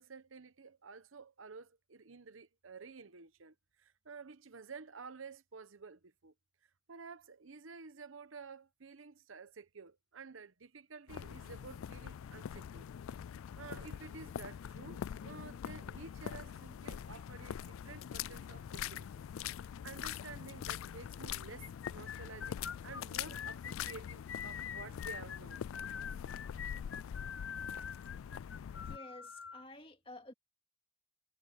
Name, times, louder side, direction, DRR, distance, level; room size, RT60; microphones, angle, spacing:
voice 1, 0.0-6.3 6.9-12.9 13.6-19.1 19.4-22.6 22.8-25.6, right 4 dB, 80° right, 0.9 m, -51 dB
sound 1, 11.1-29.0, left 9 dB, 85° left, 0.3 m, -44 dB
sound 2, 21.6-29.6, left 8 dB, 70° left, 0.8 m, -44 dB
voice 2, 28.8-30.3, left 1 dB, 25° left, 2.2 m, -51 dB
head